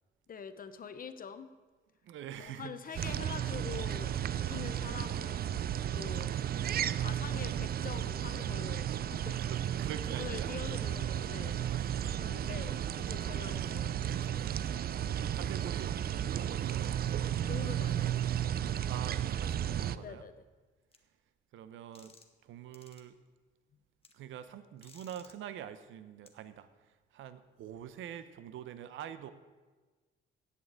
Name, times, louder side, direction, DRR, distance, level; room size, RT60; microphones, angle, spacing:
voice 1, 0.3-1.5 2.4-5.4 5.8-6.3 6.9-9.4 10.2-11.6 12.2-14.5 17.5-18.2 19.9-20.3, left 6 dB, 45° left, 11 dB, 0.9 m, -45 dB
voice 2, 2.0-3.2 9.4-10.5 15.1-16.8 18.9-20.2 21.5-22.1 22.4-23.2 24.1-29.3, right 10 dB, 80° right, 12 dB, 0.7 m, -46 dB
sound 1, 3.0-20.0, right 10 dB, 50° right, 0.5 m, -34 dB
sound 2, 20.9-21.0 21.9-22.4 22.7-23.0 24.0-24.1 24.8-25.3 26.3-26.4, left 4 dB, 30° left, 1.3 m, -58 dB
8.5 x 7.8 x 8.7 m, 1.3 s
cardioid pair, 90°, 20 cm